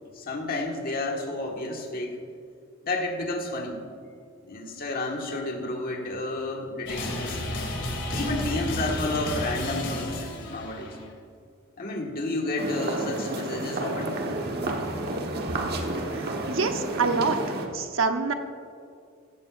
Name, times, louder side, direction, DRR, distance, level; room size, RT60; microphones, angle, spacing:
voice 1, 0.1-2.2 2.8-3.8 4.4-7.6 8.1-11.0 11.8-14.2, left 2 dB, 50° left, 1 dB, 1.7 m, -31 dB
sound 1, 6.9-11.0, left 1 dB, 65° left, 2.5 m, -32 dB
sound 2, 12.6-17.7, right 2 dB, 55° right, 1.3 m, -31 dB
voice 2, 16.1-17.4 17.7-18.3, right 4 dB, 75° right, 6 dB, 0.9 m, -26 dB
16.0 x 15.0 x 2.6 m, 2.2 s
head